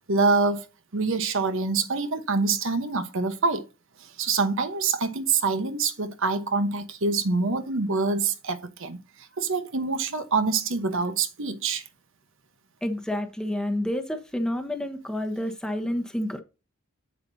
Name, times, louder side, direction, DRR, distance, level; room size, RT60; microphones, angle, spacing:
voice 1, 0.1-0.6 0.9-3.7 4.0-11.8, right 4 dB, 65° right, 1.1 m, -25 dB
voice 2, 12.8-16.4, left 1 dB, 5° left, 1.0 m, -29 dB
8.1 x 7.5 x 2.7 m
head